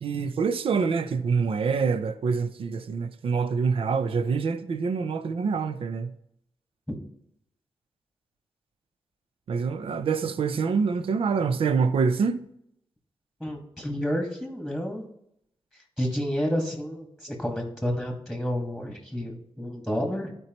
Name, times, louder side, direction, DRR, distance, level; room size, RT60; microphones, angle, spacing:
voice 1, 0.0-6.1 9.5-12.5, right 5 dB, 70° right, 0.6 m, -26 dB
voice 2, 13.4-15.0 16.0-20.3, equal, 5° right, 1.9 m, -30 dB
11.5 x 4.7 x 3.1 m
cardioid pair, 70°, 10 cm